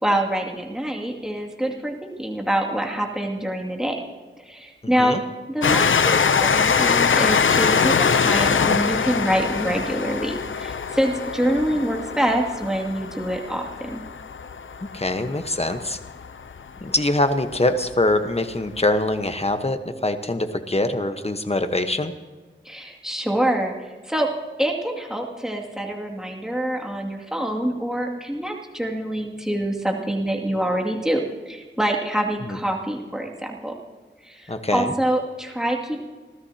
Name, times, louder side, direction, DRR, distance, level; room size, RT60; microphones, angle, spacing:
voice 1, 0.0-4.0 4.4-5.2 5.5-14.0 22.6-24.3 24.6-33.7 34.2-36.0, right 1 dB, 5° right, 0 dB, 2.4 m, -25 dB
Train, 5.6-16.8 17.5-17.6 17.8-17.9, left 6 dB, 85° left, 0.6 m, -22 dB
voice 2, 14.9-16.0 16.8-22.1 32.4-32.6 34.5-34.9, left 2 dB, 30° left, 8 dB, 1.2 m, -23 dB
27.5 x 13.5 x 2.9 m, 1.3 s
wide cardioid pair, 60°, 20 cm